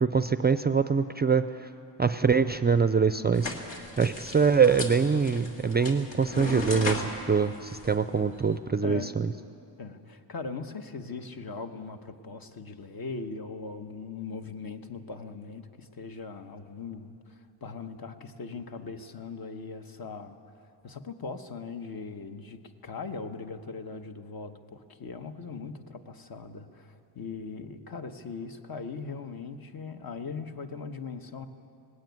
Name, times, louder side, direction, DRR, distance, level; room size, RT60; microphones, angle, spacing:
voice 1, 0.0-1.7 2.0-9.3, right 5 dB, 25° right, 11 dB, 0.4 m, -24 dB
sound 1, 3.3-8.6, left 2 dB, 70° left, 2.6 m, -37 dB
voice 2, 8.8-9.1 9.8-20.4 20.8-31.5, left 4 dB, 50° left, 7 dB, 1.3 m, -40 dB
19.0 x 16.5 x 9.4 m, 2.6 s
wide cardioid pair, 115°, 46 cm